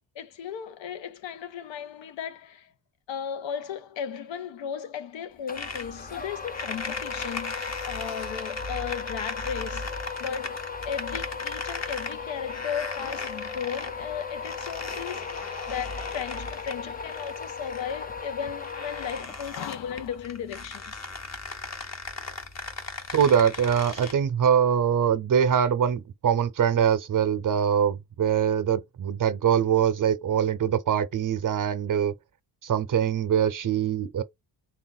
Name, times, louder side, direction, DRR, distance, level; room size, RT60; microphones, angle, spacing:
voice 1, 0.2-2.7 3.1-15.4 15.7-21.0, left 8 dB, 80° left, 0.7 m, -36 dB
sound 1, 5.5-24.1, left 3 dB, 35° left, 0.9 m, -38 dB
sound 2, 5.5-19.7, left 5 dB, 20° left, 0.4 m, -37 dB
voice 2, 23.1-32.1 32.6-34.2, right 8 dB, 45° right, 0.6 m, -23 dB
3.4 x 2.4 x 4.0 m
cardioid pair, 80°, 44 cm